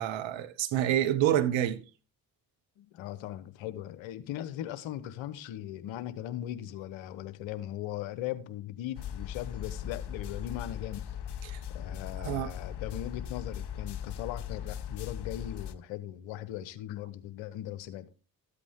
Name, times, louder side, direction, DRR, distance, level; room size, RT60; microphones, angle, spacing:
voice 1, 0.0-1.8 11.4-11.6 11.9-12.5, right 11 dB, 80° right, 1.2 m, -28 dB
voice 2, 2.8-11.0 11.7-18.1, left 12 dB, 80° left, 1.2 m, -39 dB
sound 1, 8.9-15.7, left 9 dB, 60° left, 1.1 m, -39 dB
13.5 x 8.3 x 3.6 m
hypercardioid pair, 45°, 45 cm